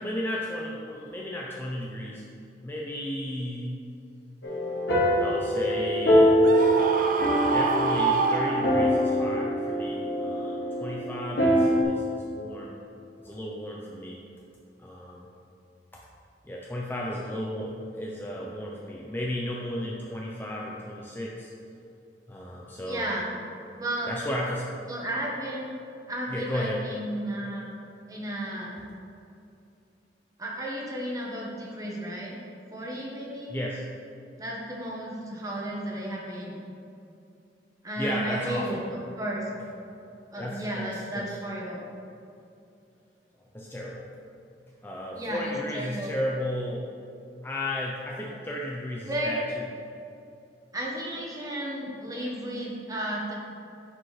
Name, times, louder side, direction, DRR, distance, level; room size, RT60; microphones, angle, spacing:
voice 1, 0.0-2.2 2.6-3.8 5.2-6.5 7.5-12.8 13.2-14.2 14.8-15.3 15.9-16.0 16.4-21.5 22.3-23.1 24.1-24.7 26.3-26.9 33.5-33.8 38.0-38.8 40.4-41.4 43.5-44.1 44.8-46.9 47.4-49.6, left 1 dB, 10° left, -3 dB, 0.5 m, -34 dB
sound 1, 4.4-11.8, equal, 75° left, 1.1 m, -24 dB
Screaming, 6.4-9.1, right 4 dB, 50° right, 0.5 m, -27 dB
voice 2, 22.8-23.3 23.8-24.1 24.9-25.7 26.1-27.7 28.1-28.8 30.4-32.4 32.7-33.5 34.4-36.6 37.8-38.8 39.2-39.4 40.3-41.9 45.1-46.1 49.1-49.4 50.7-53.3, right 1 dB, 20° right, -3 dB, 1.2 m, -33 dB
9.6 x 5.0 x 3.2 m, 2.7 s
head